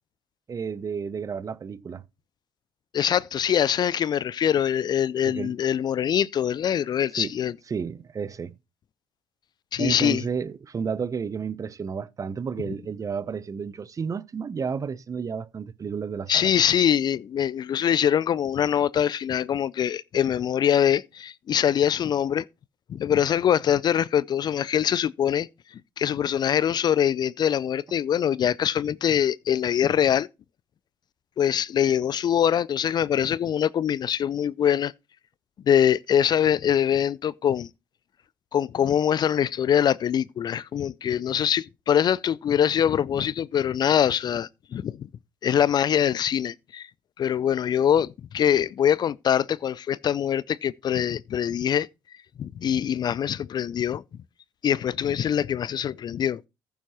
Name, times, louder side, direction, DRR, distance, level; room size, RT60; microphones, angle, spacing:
voice 1, 0.5-2.0 5.3-5.5 7.2-7.3 7.7-8.6 9.8-16.5, right 6 dB, 35° right, 0.7 m, -31 dB
voice 2, 2.9-7.5 9.7-10.2 16.3-22.5 22.9-25.5 26.0-30.3 31.4-34.9 35.7-37.7 38.5-45.1 45.4-46.9 47.2-51.9 52.4-54.0 54.6-56.4, left 9 dB, 45° left, 0.4 m, -23 dB
14.5 x 7.0 x 3.0 m
hypercardioid pair, 60°, 10 cm